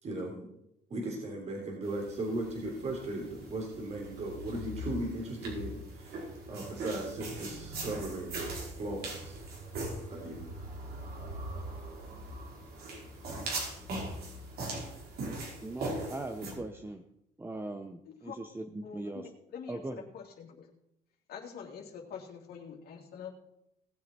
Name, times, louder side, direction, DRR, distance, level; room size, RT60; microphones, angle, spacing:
voice 1, 0.0-0.5 0.9-8.4 8.7-9.4 10.1-10.5, right 1 dB, 40° right, 0 dB, 3.4 m, -37 dB
sound 1, 1.8-16.5, right 2 dB, 65° right, 4.7 m, -40 dB
voice 2, 15.6-17.0 17.4-19.3 19.7-20.1, right 2 dB, 15° right, 7 dB, 0.9 m, -40 dB
voice 3, 18.8-20.7 21.3-23.3, left 7 dB, 65° left, 0 dB, 2.9 m, -45 dB
19.0 x 7.8 x 4.5 m, 0.79 s
cardioid pair, 110°, 17 cm